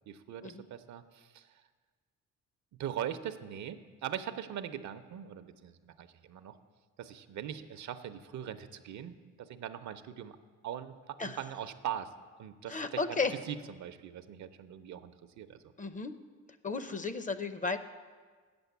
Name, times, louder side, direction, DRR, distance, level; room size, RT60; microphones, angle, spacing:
voice 1, 0.1-1.4 2.8-6.6 7.0-10.4 10.6-12.1 12.4-13.2 13.5-15.6, right 10 dB, 70° right, 10 dB, 0.7 m, -41 dB
voice 2, 12.7-13.3 15.8-16.2 16.6-17.8, left 4 dB, 25° left, 11 dB, 0.6 m, -34 dB
8.1 x 7.0 x 8.2 m, 1.5 s
cardioid pair, 90°, 30 cm